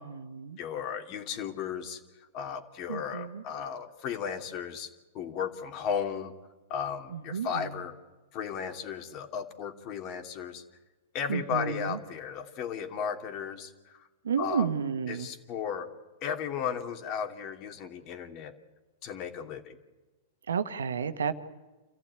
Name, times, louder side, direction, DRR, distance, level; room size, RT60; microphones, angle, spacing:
voice 1, 0.0-0.6 2.9-3.4 7.1-7.7 11.3-12.0 14.2-15.3 20.5-21.4, right 6 dB, 85° right, 1.4 m, -31 dB
voice 2, 0.6-2.0 2.3-6.3 6.7-7.9 8.3-10.6 11.1-14.1 14.4-14.7 15.1-15.9 16.2-18.5 19.0-19.8, left 7 dB, 45° left, 2.7 m, -35 dB
28.0 x 15.0 x 9.5 m
hypercardioid pair, 115°, 0 cm